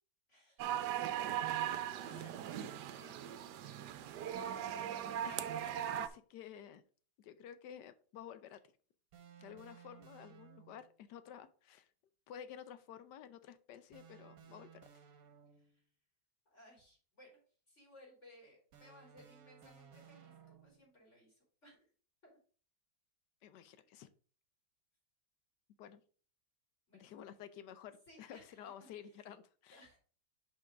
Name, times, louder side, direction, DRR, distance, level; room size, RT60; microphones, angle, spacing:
voice 1, 0.3-1.1 1.9-4.7 5.1-5.2 15.5-15.8 16.5-17.4 17.7-21.9 22.2-22.4 23.8-23.9 26.9-27.1 28.1-29.3 29.7-30.0, left 1 dB, 40° left, -3 dB, 3.4 m, -62 dB
sound 1, 0.6-6.1, right 10 dB, 75° right, 1.2 m, -39 dB
sound 2, 4.3-6.1 9.1-11.0 13.9-15.9 18.7-20.9, right 8 dB, 60° right, 1.4 m, -59 dB
voice 2, 5.2-6.8 7.2-8.6 9.4-11.9 12.3-14.8 23.4-24.1 25.8-26.0 26.9-29.8, left 9 dB, 75° left, 12 dB, 1.2 m, -52 dB
5.4 x 5.1 x 4.9 m, 0.41 s
omnidirectional pair, 1.9 m